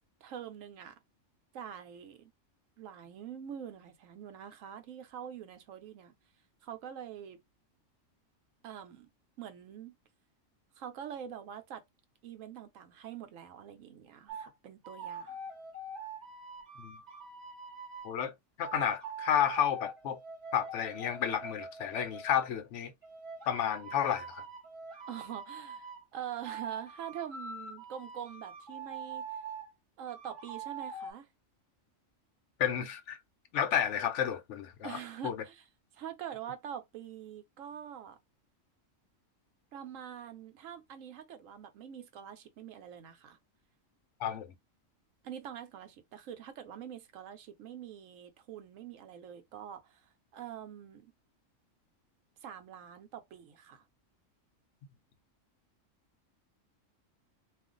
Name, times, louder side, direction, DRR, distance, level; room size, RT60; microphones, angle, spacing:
voice 1, 0.2-0.9 1.5-2.3 2.8-6.1 6.6-7.4 8.6-9.1 9.4-10.0 10.8-11.8 12.2-15.4 25.1-29.3 30.0-31.3 34.8-35.7 35.9-38.2 39.7-43.4 45.2-51.1 52.4-53.8, right 9 dB, 80° right, 1.0 m, -45 dB
sound 1, 14.3-14.5 14.8-18.1 18.6-22.4 23.0-26.0 26.4-29.7 30.1-31.1, right 3 dB, 40° right, 0.9 m, -44 dB
voice 2, 18.6-20.2 20.5-22.9 23.5-24.4 32.6-33.2 33.5-35.4 44.2-44.5, left 9 dB, 70° left, 0.9 m, -31 dB
2.5 x 2.4 x 3.7 m
omnidirectional pair, 1.4 m